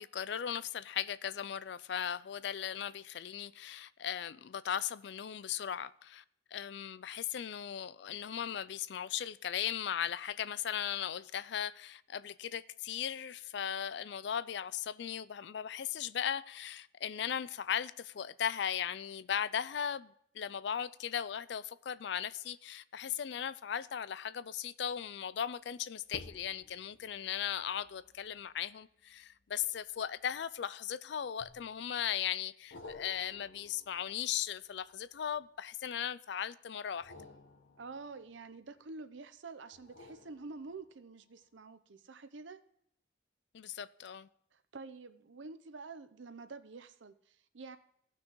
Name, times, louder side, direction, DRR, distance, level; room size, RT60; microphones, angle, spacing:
voice 1, 0.0-6.2 6.5-37.1 43.5-44.3, left 9 dB, 65° left, 0.4 m, -37 dB
sound 1, 24.8-25.2 26.0-30.7 31.4-32.0 32.7-35.7 36.9-39.0 39.7-41.1 41.6-41.7, left 2 dB, 90° left, 1.2 m, -56 dB
voice 2, 37.8-42.6 44.5-47.8, right 3 dB, 80° right, 0.7 m, -48 dB
17.0 x 6.0 x 3.1 m
head